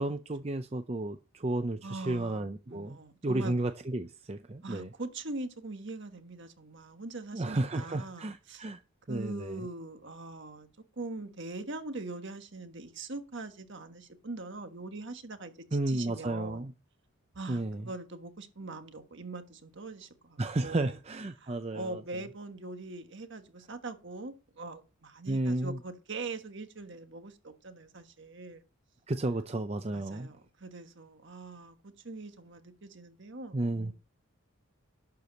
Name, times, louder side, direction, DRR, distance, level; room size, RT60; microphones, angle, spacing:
voice 1, 0.0-3.0 3.2-4.9 7.3-8.8 9.1-9.6 15.7-16.7 17.5-17.9 20.4-22.0 25.3-25.8 29.1-30.3 33.5-33.9, right 2 dB, 30° right, 0.5 m, -32 dB
voice 2, 1.8-3.5 4.6-8.6 9.1-10.7 11.0-16.7 17.3-21.0 21.4-28.6 29.9-33.9, right 3 dB, 55° right, 1.4 m, -42 dB
12.0 x 4.7 x 7.0 m
head